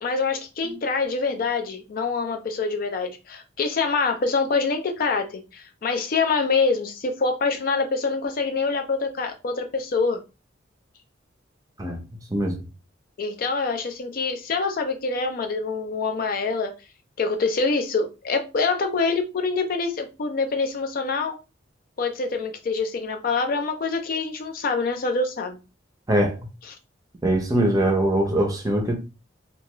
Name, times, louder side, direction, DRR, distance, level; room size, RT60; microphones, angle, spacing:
voice 1, 0.0-10.2 13.2-16.7 17.2-21.4 22.0-25.6, left 4 dB, 45° left, 0.3 m, -25 dB
voice 2, 27.2-29.0, right 1 dB, 20° right, 0.6 m, -22 dB
2.3 x 2.2 x 2.9 m
head